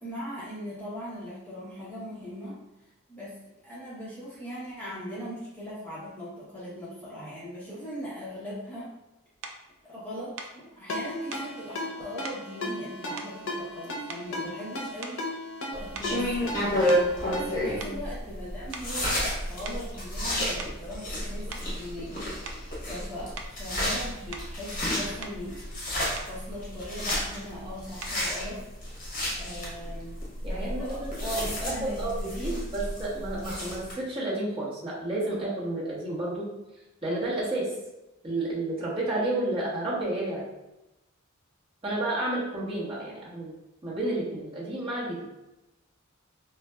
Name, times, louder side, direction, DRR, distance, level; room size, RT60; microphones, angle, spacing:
voice 1, 0.0-2.6 3.1-8.9 9.8-15.3 15.8-16.9 17.3-22.3 22.8-25.6 26.3-28.6 29.3-30.2 30.4-32.7, equal, 10° left, -9 dB, 0.6 m, -39 dB
sound 1, 9.4-9.6 10.4-10.6 11.3-11.5 12.2-12.5 13.2-13.8 14.1-14.5 15.0-15.4 15.9-17.5 17.8-18.0 18.7-19.0 19.7-19.9 20.4-20.9 21.5-21.7 22.5-22.7 23.4-23.6 24.3-24.6 25.0-25.4 26.2-26.4 27.1-27.3 28.0-28.3, right 4 dB, 60° right, 0.3 m, -42 dB
Ringtone, 10.9-17.8, left 1 dB, 65° left, 0.6 m, -36 dB
sound 2, 15.7-33.9, equal, 40° left, 0.9 m, -31 dB
voice 2, 30.4-36.5 37.0-37.7 38.2-40.5 41.8-43.5 43.8-45.3, right 2 dB, 25° right, -8 dB, 1.0 m, -31 dB
3.9 x 2.2 x 2.2 m, 0.96 s
head